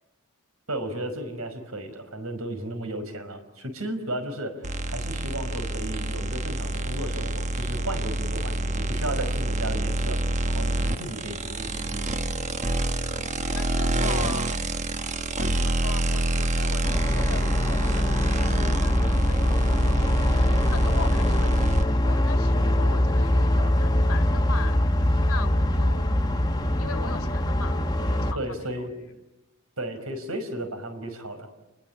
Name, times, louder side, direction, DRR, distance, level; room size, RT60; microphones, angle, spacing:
voice 1, 0.7-12.1 28.4-28.9 29.8-31.5, right 1 dB, 75° right, 8 dB, 5.3 m, -34 dB
sound 1, 4.6-21.8, right 1 dB, 30° right, 1.2 m, -27 dB
voice 2, 13.0-14.5 14.9-24.8 25.3-26.2 26.8-29.1, left 4 dB, 80° left, 7 dB, 2.2 m, -40 dB
sound 2, 16.8-28.3, left 1 dB, 20° left, 1.4 m, -23 dB
29.5 x 20.5 x 8.7 m, 0.99 s
head